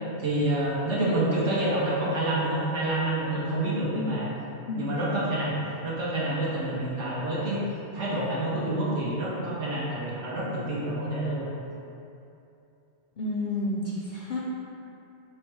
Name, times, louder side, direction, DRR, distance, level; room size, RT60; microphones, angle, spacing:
voice 1, 0.2-4.3 4.8-5.5 5.8-7.6 7.9-11.5, right 1 dB, 85° right, -6 dB, 1.3 m, -28 dB
voice 2, 13.2-14.4, left 2 dB, 60° left, -4 dB, 0.5 m, -30 dB
3.3 x 3.1 x 4.5 m, 2.8 s
omnidirectional pair, 1.2 m